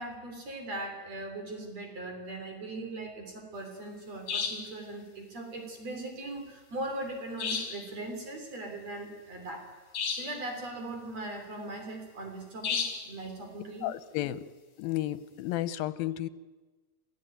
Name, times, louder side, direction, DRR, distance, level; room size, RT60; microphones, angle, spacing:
voice 1, 0.0-9.7 10.1-13.9, right 2 dB, 50° right, 3 dB, 4.3 m, -39 dB
sound 1, 4.3-4.8 7.4-7.9 9.9-10.4 12.6-13.1, left 6 dB, 65° left, 3.7 m, -32 dB
voice 2, 13.8-14.5 14.8-16.3, left 14 dB, 85° left, 15 dB, 2.7 m, -32 dB
27.5 x 15.5 x 9.2 m, 1.3 s
omnidirectional pair, 4.1 m